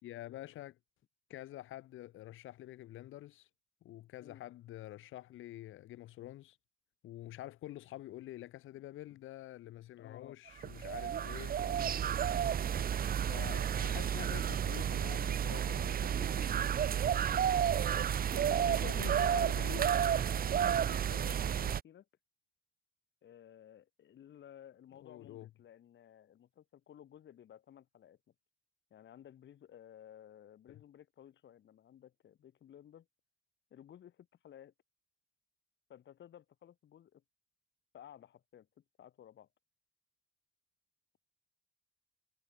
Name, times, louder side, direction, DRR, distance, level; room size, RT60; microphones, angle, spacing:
voice 1, 0.0-0.8 1.3-3.5 3.8-6.6 7.0-12.1 13.3-16.8 18.5-20.5 25.0-25.5 30.7-30.8, left 14 dB, 85° left, 3.5 m, -48 dB
voice 2, 10.0-10.4 12.2-12.6 17.4-19.4 20.4-20.5 20.7-22.1 23.2-28.2 28.9-33.1 33.7-34.7 35.9-37.2 37.9-39.5, left 10 dB, 65° left, 6.9 m, -56 dB
sound 1, 10.6-21.8, right 9 dB, 50° right, 0.8 m, -31 dB
cardioid pair, 90°, 20 cm